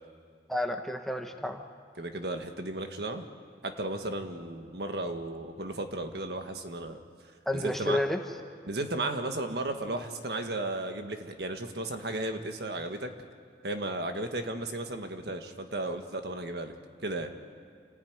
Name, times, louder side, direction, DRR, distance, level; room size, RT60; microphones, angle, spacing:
voice 1, 0.5-1.6 7.5-8.2, left 1 dB, ahead, 4 dB, 1.2 m, -30 dB
voice 2, 2.0-3.3 3.6-7.0 7.5-8.0 8.7-13.1 13.6-16.7 17.0-17.3, right 2 dB, 70° right, 6 dB, 1.7 m, -34 dB
28.0 x 15.0 x 9.6 m, 2.2 s
head